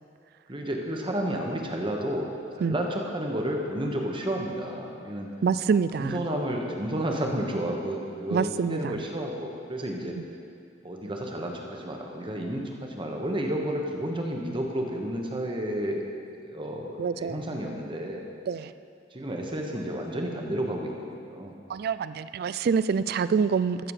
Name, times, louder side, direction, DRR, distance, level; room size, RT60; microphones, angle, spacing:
voice 1, 0.5-2.3 2.6-5.3 5.9-10.2 10.8-16.0 16.4-18.3 19.1-21.5, right 1 dB, 30° right, 1 dB, 1.2 m, -31 dB
voice 2, 5.4-6.2 8.3-9.0 10.1-10.2 17.0-17.4 18.5-18.7 21.7-23.9, right 6 dB, 55° right, 14 dB, 0.3 m, -26 dB
14.0 x 6.9 x 4.9 m, 2.4 s
head